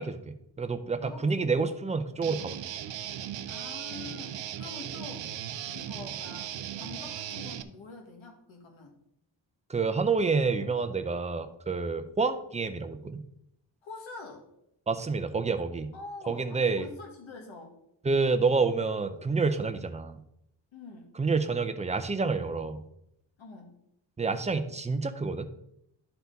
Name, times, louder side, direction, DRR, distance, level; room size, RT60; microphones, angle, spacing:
voice 1, 0.0-2.6 9.7-13.2 14.9-15.9 16.3-16.9 18.0-20.2 21.2-22.8 24.2-25.5, right 4 dB, 15° right, 9 dB, 0.4 m, -28 dB
voice 2, 1.0-1.7 3.5-8.9 13.8-14.4 15.9-17.7 20.7-21.1 23.4-23.7, left 4 dB, 80° left, 1 dB, 1.9 m, -46 dB
Guitar, 2.2-7.6, right 10 dB, 70° right, 0.6 m, -37 dB
11.5 x 4.4 x 4.0 m, 0.78 s
wide cardioid pair, 155°, 46 cm